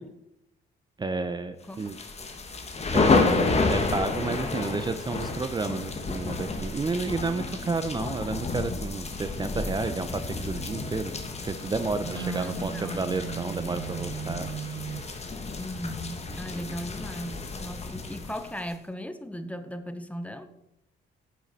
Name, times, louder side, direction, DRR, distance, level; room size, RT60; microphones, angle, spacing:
voice 1, 1.0-2.0 2.9-11.1 11.4-14.5 16.4-16.6, right 3 dB, 20° right, 10 dB, 0.6 m, -31 dB
sound 1, 1.8-18.7, left 3 dB, 30° left, 1.4 m, -30 dB
voice 2, 7.3-7.8 12.1-13.1 15.6-20.5, equal, 5° left, 10 dB, 0.8 m, -37 dB
Telephone, 12.0-15.1, right 9 dB, 65° right, 0.6 m, -37 dB
9.5 x 7.4 x 4.1 m, 0.83 s
cardioid pair, 90°, 20 cm